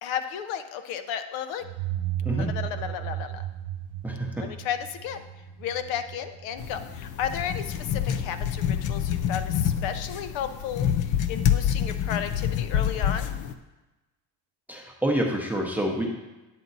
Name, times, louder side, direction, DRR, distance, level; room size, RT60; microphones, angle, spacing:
voice 1, 0.0-1.7 2.3-3.5 4.4-5.2 5.6-13.3, left 8 dB, 80° left, 9 dB, 0.8 m, -33 dB
sound 1, 1.6-8.2, right 12 dB, 45° right, 0.7 m, -35 dB
voice 2, 4.0-4.5 14.7-16.1, right 1 dB, 5° right, 0 dB, 0.6 m, -27 dB
sound 2, 6.6-13.5, left 9 dB, 45° left, 0.5 m, -27 dB
9.2 x 7.3 x 4.0 m, 1.1 s
cardioid pair, 180°, 45 cm